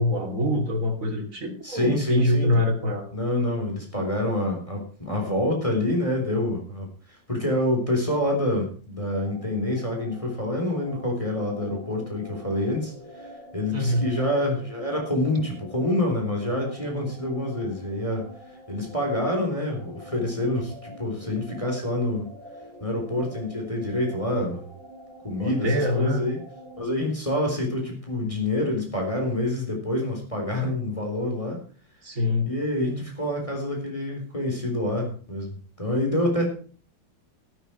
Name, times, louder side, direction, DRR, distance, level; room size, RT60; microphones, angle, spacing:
voice 1, 0.0-3.1 13.7-14.1 25.4-26.2 32.0-32.5, left 1 dB, 45° right, 3 dB, 3.1 m, -25 dB
voice 2, 1.6-2.6 3.1-18.3 18.7-22.3 22.8-24.7 25.2-26.4 26.8-31.6 32.5-36.5, left 1 dB, 15° left, 1 dB, 3.9 m, -27 dB
sound 1, 9.2-26.8, equal, 15° right, 4.8 m, -46 dB
12.5 x 12.5 x 4.5 m, 0.40 s
omnidirectional pair, 2.0 m